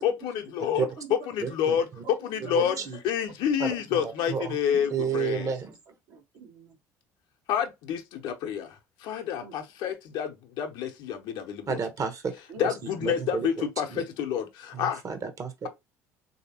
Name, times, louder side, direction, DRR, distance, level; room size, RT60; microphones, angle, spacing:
voice 1, 0.0-0.9 1.3-1.9 2.2-2.7 3.0-5.5 7.5-11.8 12.6-15.0, left 8 dB, 60° left, 0.7 m, -29 dB
voice 2, 0.8-2.8 3.4-4.3 4.7-5.7 6.1-6.8 9.4-9.6 12.5-12.7, right 5 dB, 65° right, 1.0 m, -48 dB
voice 3, 1.4-1.8 2.4-3.0 3.6-4.6 4.9-5.7 11.7-12.3 12.6-12.7 13.0-13.5 13.9-14.0 14.7-15.7, right 6 dB, 40° right, 0.9 m, -31 dB
3.2 x 2.7 x 2.8 m
hypercardioid pair, 60°, 9 cm